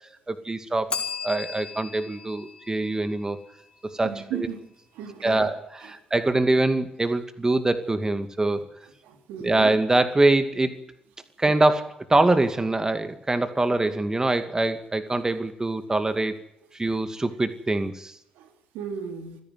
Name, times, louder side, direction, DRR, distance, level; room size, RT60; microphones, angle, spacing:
voice 1, 0.3-0.9 1.2-3.4 3.8-4.5 5.2-8.6 9.4-10.8 11.4-16.4 16.7-18.2, right 2 dB, 20° right, 10 dB, 2.3 m, -24 dB
Bell, 0.9-3.7, left 5 dB, 40° left, 4.8 m, -36 dB
voice 2, 4.0-4.6 4.9-5.5 9.0-9.7 18.4-18.5 18.7-19.4, right 8 dB, 80° right, 6 dB, 3.2 m, -35 dB
27.5 x 10.5 x 9.6 m, 0.76 s
hypercardioid pair, 50°, 3 cm